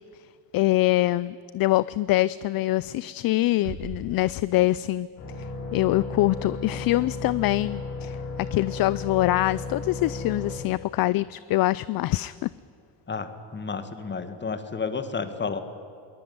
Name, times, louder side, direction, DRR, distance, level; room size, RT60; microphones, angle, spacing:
voice 1, 0.5-5.1 5.4-12.5, left 17 dB, 50° left, 19 dB, 0.5 m, -24 dB
sound 1, 3.6-5.3, right 6 dB, 90° right, 3.1 m, -41 dB
sound 2, 5.2-10.5, left 3 dB, 85° left, 6.9 m, -34 dB
voice 2, 13.1-15.6, left 5 dB, 25° left, 10 dB, 1.9 m, -31 dB
22.5 x 20.0 x 9.5 m, 2.5 s
cardioid pair, 130°, 45 cm